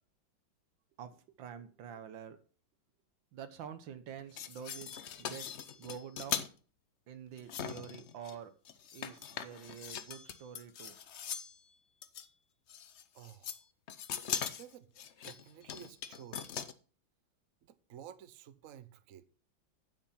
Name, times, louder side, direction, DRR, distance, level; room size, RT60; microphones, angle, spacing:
voice 1, 1.0-2.4 3.3-4.9 5.2-5.5 5.7-6.5 7.1-8.5 8.9-10.9, right 8 dB, 70° right, 1.7 m, -47 dB
sound 1, 4.2-6.5 7.4-8.4 8.7-11.6 12.0-12.3 12.7-13.6 13.9-16.7, left 8 dB, 85° left, 0.6 m, -41 dB
voice 2, 13.1-13.5 14.5-14.9 15.2-16.5 17.6-19.2, right 10 dB, 55° right, 1.0 m, -52 dB
9.3 x 7.4 x 5.6 m
omnidirectional pair, 2.2 m